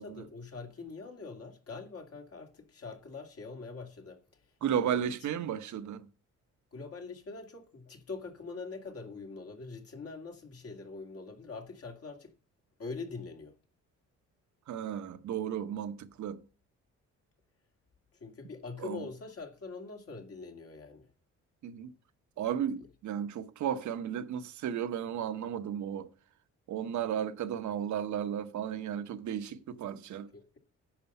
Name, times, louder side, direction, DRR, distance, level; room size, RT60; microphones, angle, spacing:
voice 1, 0.0-4.2 4.8-5.3 6.7-12.3 12.8-13.5 18.1-21.1 22.8-22.9 30.3-30.6, left 4 dB, 50° left, 2.3 m, -43 dB
voice 2, 4.6-6.0 14.7-16.4 18.8-19.0 21.6-21.9 22.4-26.1 26.7-30.3, right 9 dB, 70° right, 1.1 m, -34 dB
10.5 x 6.8 x 5.5 m
cardioid pair, 90°, 30 cm